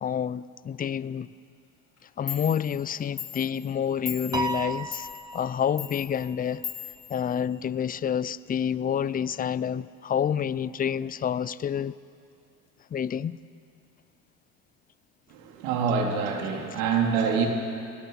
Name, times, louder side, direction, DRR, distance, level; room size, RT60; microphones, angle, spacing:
voice 1, 0.0-1.3 2.2-5.1 5.3-6.6 7.1-11.9 12.9-13.4, left 8 dB, 20° left, 0.6 m, -28 dB
Clock, 2.0-2.1 2.3-7.9, left 10 dB, 35° left, 3.2 m, -40 dB
Piano, 4.3-5.9, right 2 dB, 10° right, 1.4 m, -33 dB
voice 2, 15.3-17.5, right 6 dB, 70° right, 4.1 m, -26 dB
30.0 x 20.5 x 5.9 m
hypercardioid pair, 80°, 42 cm